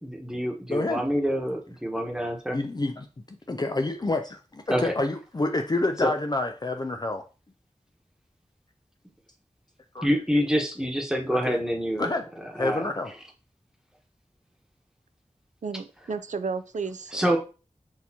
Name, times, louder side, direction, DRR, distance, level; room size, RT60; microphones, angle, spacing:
voice 1, 0.0-2.6 4.7-4.9 6.0-6.1 10.0-12.1 12.5-12.9 17.1-17.4, equal, 5° right, 1 dB, 1.2 m, -26 dB
voice 2, 0.7-1.0 2.5-7.2 9.9-10.1 11.4-11.6 12.0-12.3 12.6-13.1, left 2 dB, 35° left, 5 dB, 0.4 m, -28 dB
voice 3, 15.6-17.3, right 5 dB, 75° right, 12 dB, 0.4 m, -33 dB
6.2 x 2.7 x 2.9 m, 0.34 s
wide cardioid pair, 45°, 13 cm